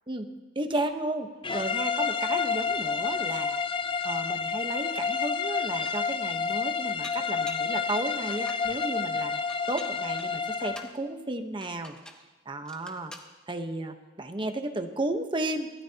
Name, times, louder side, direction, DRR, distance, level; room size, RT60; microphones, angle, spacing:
voice 1, 0.5-1.3 1.5-3.6 4.0-9.4 9.7-12.0 12.5-13.1 13.5-15.7, right 2 dB, 25° right, 6 dB, 1.1 m, -33 dB
sound 1, 1.4-10.9, left 5 dB, 25° left, 0.5 m, -29 dB
Dishes pots and pans, 5.0-5.1 5.5-6.2 7.0-7.7 8.2-8.7 9.5-11.0 11.6-12.3 12.7-13.3, left 1 dB, 5° left, 1.1 m, -47 dB
24.0 x 16.5 x 2.9 m, 1.3 s
head